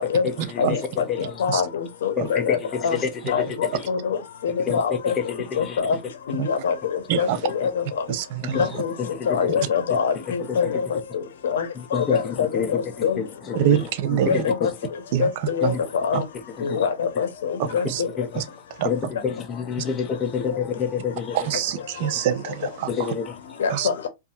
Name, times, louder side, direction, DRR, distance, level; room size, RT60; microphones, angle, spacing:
voice 1, 0.2-1.4 2.2-3.9 4.6-5.9 7.3-7.7 8.4-9.5 10.4-10.8 11.7-14.7 15.6-15.9 16.3-16.9 17.1-17.2 17.7-18.5 18.8-21.6 22.0-22.2 22.9-23.6, left 6 dB, 25° left, 0.6 m, -29 dB
voice 2, 1.4-2.6 2.8-3.0 3.3-4.2 4.4-5.1 5.6-6.0 6.3-7.8 8.6-8.9 9.3-11.0 11.4-11.7 12.1-13.2 13.7-13.8 14.3-14.7 15.2-15.7 16.0-16.2 16.6-18.1 23.6-24.1, left 6 dB, 85° left, 0.7 m, -24 dB
voice 3, 8.1-8.6 13.6-14.5 15.1-15.3 15.6-15.7 16.1-16.2 17.6-18.0 18.4-18.5 18.8-18.9 21.4-22.9 23.7-23.9, right 10 dB, 55° right, 0.4 m, -24 dB
2.7 x 2.4 x 2.3 m
supercardioid pair, 135°, 0 cm